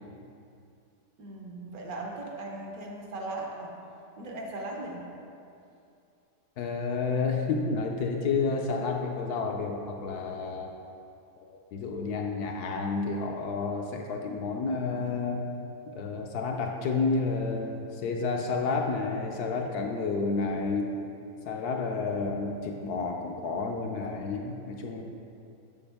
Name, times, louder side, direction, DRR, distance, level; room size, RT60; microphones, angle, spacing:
voice 1, 1.2-3.7 4.2-5.0, right 2 dB, 60° right, -1 dB, 1.2 m, -38 dB
voice 2, 6.6-10.7 11.4-15.5 15.9-20.9 21.4-25.0, left 4 dB, 70° left, 2 dB, 1.0 m, -30 dB
7.1 x 7.0 x 3.4 m, 2.6 s
omnidirectional pair, 1.9 m